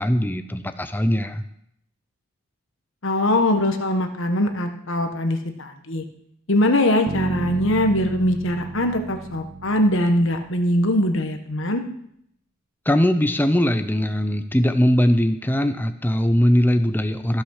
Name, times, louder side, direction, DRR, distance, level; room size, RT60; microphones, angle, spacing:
voice 1, 0.0-1.4 12.9-17.4, equal, 10° left, 9 dB, 0.6 m, -20 dB
voice 2, 3.0-6.0 6.5-11.8, left 1 dB, 60° left, 6 dB, 1.3 m, -22 dB
Bass guitar, 7.1-11.1, right 3 dB, 35° right, 0.4 m, -34 dB
14.5 x 5.9 x 6.5 m, 0.72 s
head